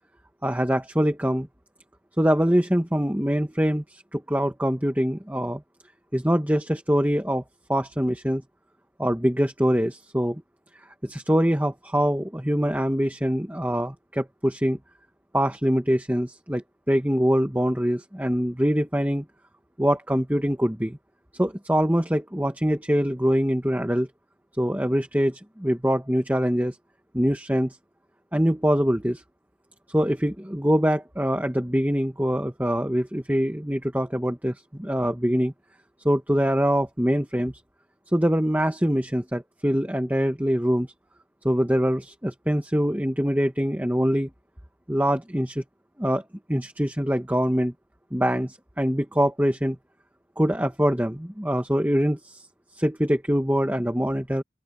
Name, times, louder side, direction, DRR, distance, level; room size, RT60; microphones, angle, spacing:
voice 1, 0.4-1.5 2.2-5.6 6.1-7.4 7.7-8.4 9.0-10.4 11.0-14.8 15.3-19.2 19.8-21.0 21.4-24.1 24.6-26.8 27.1-27.8 28.3-29.2 29.9-35.5 36.0-37.5 38.1-40.9 41.4-44.3 44.9-45.6 46.0-46.2 46.5-47.7 48.1-49.8 50.4-52.5 52.7-54.4, equal, 10° right, 1.5 m, -24 dB
open air
head